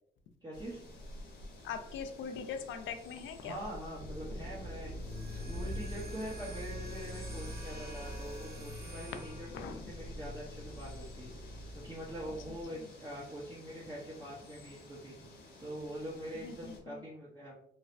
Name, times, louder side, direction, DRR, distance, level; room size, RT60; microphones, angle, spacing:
voice 1, 0.4-0.8 3.4-4.9 5.3-15.2 15.6-17.5, equal, 20° right, -7 dB, 0.8 m, -44 dB
sound 1, 0.5-16.8, left 1 dB, 55° left, 0.9 m, -50 dB
voice 2, 1.6-3.6 9.5-9.9 12.5-12.9 16.4-17.0, left 6 dB, 75° left, 8 dB, 0.4 m, -42 dB
sound 2, 4.0-12.6, left 1 dB, 5° left, 0.8 m, -44 dB
sound 3, 5.0-9.8, right 4 dB, 55° right, 0.8 m, -51 dB
3.2 x 2.0 x 2.6 m, 0.69 s
cardioid pair, 90°, 20 cm